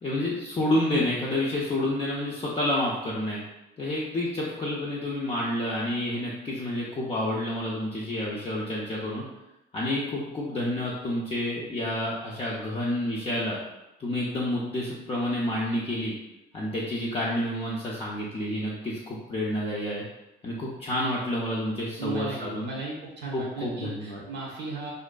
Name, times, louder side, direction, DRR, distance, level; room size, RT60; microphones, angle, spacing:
voice 1, 0.0-3.4 3.8-9.3 9.7-13.6 14.0-16.1 16.5-20.0 20.4-22.7 23.3-24.2, left 1 dB, 30° left, -6 dB, 0.5 m, -29 dB
voice 2, 22.0-24.9, right 3 dB, 65° right, -3 dB, 0.8 m, -36 dB
2.6 x 2.4 x 2.2 m, 0.96 s
cardioid pair, 90°, 20 cm